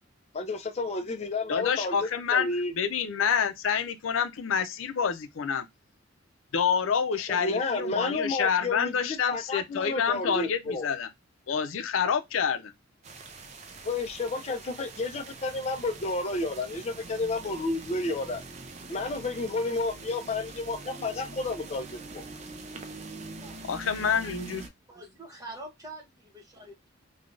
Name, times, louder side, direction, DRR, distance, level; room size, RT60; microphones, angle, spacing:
voice 1, 0.3-2.0 2.3-2.7 7.3-10.9 13.8-18.4 18.9-22.2, left 3 dB, 35° left, 0.5 m, -31 dB
voice 2, 1.5-5.7 6.5-11.1 11.5-12.7 23.7-24.7, left 7 dB, 85° left, 0.5 m, -28 dB
sound 1, 13.0-24.7, right 3 dB, 35° right, 0.5 m, -44 dB
voice 3, 23.2-24.2 24.9-26.9, right 2 dB, 20° right, 0.9 m, -46 dB
3.2 x 2.2 x 2.5 m
head